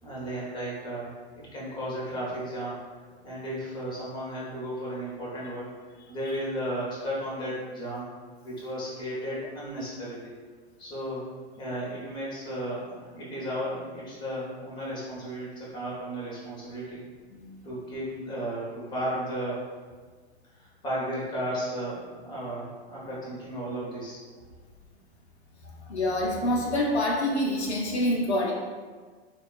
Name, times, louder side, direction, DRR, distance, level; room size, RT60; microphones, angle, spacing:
voice 1, 0.0-1.1 1.5-2.8 3.2-5.7 6.1-8.1 8.4-10.3 10.8-11.3 11.6-17.0 17.6-19.6 20.5-24.2, equal, 15° left, -6 dB, 0.8 m, -34 dB
voice 2, 17.3-17.7 23.0-23.1 25.6-28.5, left 1 dB, 75° left, -2 dB, 0.6 m, -27 dB
3.5 x 2.2 x 2.3 m, 1.5 s
figure-of-eight pair, 100°, 33 cm